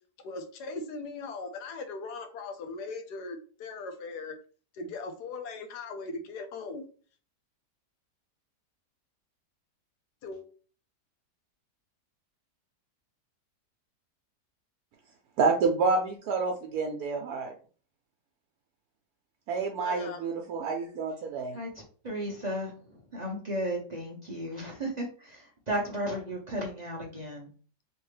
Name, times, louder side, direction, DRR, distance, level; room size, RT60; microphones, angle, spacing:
voice 1, 0.2-4.3 4.7-6.9 10.2-10.4 19.8-20.3, left 3 dB, 80° left, 6 dB, 1.3 m, -39 dB
voice 2, 15.4-17.5 19.5-21.6, right 4 dB, 75° right, 2 dB, 1.1 m, -28 dB
voice 3, 21.5-27.5, equal, 45° right, -2 dB, 0.5 m, -35 dB
3.3 x 3.0 x 3.1 m, 0.40 s
omnidirectional pair, 1.7 m